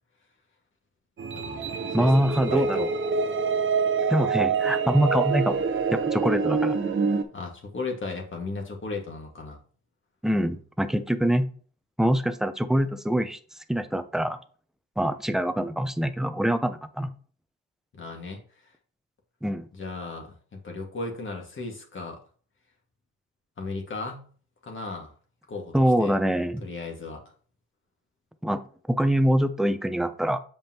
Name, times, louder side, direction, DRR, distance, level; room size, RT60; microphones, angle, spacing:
sound 1, 1.2-7.2, right 5 dB, 40° right, 0.8 m, -26 dB
voice 1, 1.4-2.9 7.3-9.6 17.9-18.7 19.7-22.2 23.6-24.2 24.6-25.1 25.5-26.1 26.6-27.2, left 3 dB, 40° left, 1.9 m, -36 dB
voice 2, 1.9-2.9 4.1-5.6 5.9-6.8 10.2-11.5 12.0-13.4 13.7-14.4 15.0-17.1 19.4-19.7 25.7-26.7 28.4-28.6 28.9-30.4, right 1 dB, ahead, 0.6 m, -24 dB
7.6 x 5.2 x 2.9 m
cardioid pair, 90°, 30 cm